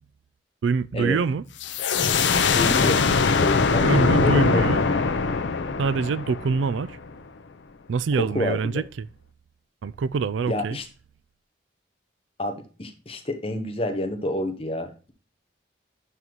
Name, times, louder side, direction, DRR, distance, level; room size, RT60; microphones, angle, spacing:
voice 1, 0.6-1.4 3.9-4.8 5.8-7.0 7.9-9.1 9.8-10.8, right 5 dB, 90° right, 0.4 m, -25 dB
sound 1, 1.6-7.1, left 4 dB, 80° left, 0.6 m, -22 dB
voice 2, 2.5-3.0 3.4-4.8 8.2-8.6 10.5-10.8 12.4-15.1, left 1 dB, 30° left, 0.9 m, -28 dB
11.0 x 4.0 x 3.0 m
head